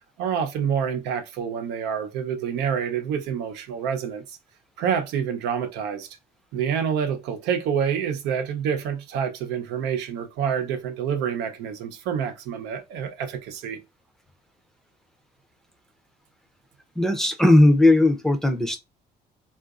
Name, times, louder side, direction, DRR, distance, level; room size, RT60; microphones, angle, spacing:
voice 1, 0.2-4.2 4.8-6.1 6.5-13.8, right 7 dB, 90° right, 0.7 m, -27 dB
voice 2, 17.0-18.8, left 1 dB, 5° left, 0.5 m, -17 dB
3.7 x 2.5 x 2.4 m
cardioid pair, 110°, 17 cm